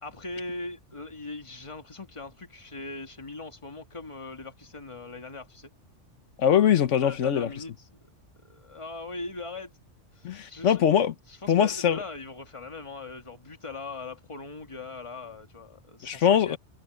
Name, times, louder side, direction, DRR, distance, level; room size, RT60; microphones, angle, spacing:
voice 1, 0.0-5.7 7.0-8.0 8.4-9.7 10.1-10.8 11.3-16.6, left 3 dB, 25° left, 1.7 m, -40 dB
voice 2, 6.4-7.5 10.2-11.1 11.5-12.0 16.0-16.6, left 9 dB, 85° left, 1.3 m, -22 dB
omnidirectional pair, 1.2 m